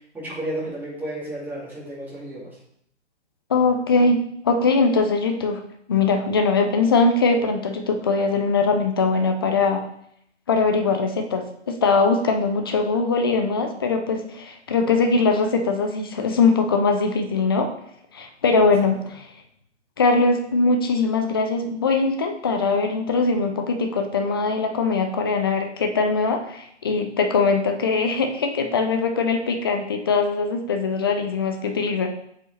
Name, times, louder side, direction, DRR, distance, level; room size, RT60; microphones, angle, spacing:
voice 1, 0.1-2.5 18.8-18.9, right 1 dB, 5° right, -7 dB, 2.0 m, -32 dB
voice 2, 3.5-4.2 4.4-5.6 5.9-9.9 10.5-17.7 18.1-19.2 20.0-32.1, left 4 dB, 20° left, 4 dB, 0.3 m, -21 dB
7.4 x 4.7 x 3.2 m, 0.73 s
hypercardioid pair, 145°, 36 cm